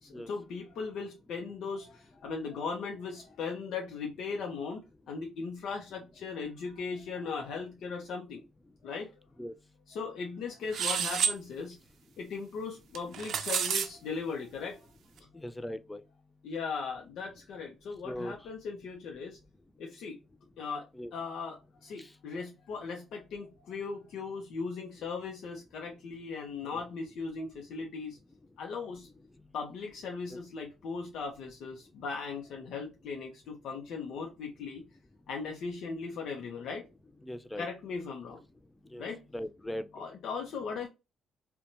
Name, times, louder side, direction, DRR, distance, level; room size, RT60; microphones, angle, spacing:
voice 1, 0.0-8.4 8.8-9.1 9.9-11.8 12.2-14.9 16.4-19.4 19.8-20.2 20.6-28.2 28.6-29.1 29.5-34.8 35.3-36.9 37.6-38.4 39.0-39.2 39.9-40.9, left 5 dB, 75° left, 0.6 m, -38 dB
sound 1, 10.7-11.4 12.9-13.9, right 7 dB, 65° right, 0.4 m, -29 dB
voice 2, 15.4-16.0 18.1-18.3 21.0-21.1 30.3-30.4 37.3-37.7 38.9-39.1 39.3-39.8, left 1 dB, 10° left, 0.3 m, -38 dB
2.8 x 2.1 x 2.5 m
cardioid pair, 90°, 0 cm